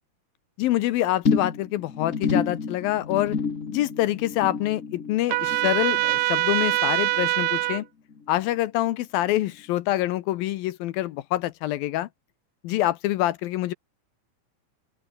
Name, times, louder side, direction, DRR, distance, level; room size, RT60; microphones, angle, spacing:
voice 1, 0.6-3.4 3.7-7.9 8.3-12.1 12.6-13.7, left 15 dB, 75° left, 2.5 m, -26 dB
sound 1, 1.2-7.8 8.1-8.5 8.8-8.9, left 5 dB, 55° left, 0.8 m, -30 dB
Trumpet, 5.3-7.8, right 19 dB, 85° right, 1.9 m, -24 dB
open air
omnidirectional pair, 4.5 m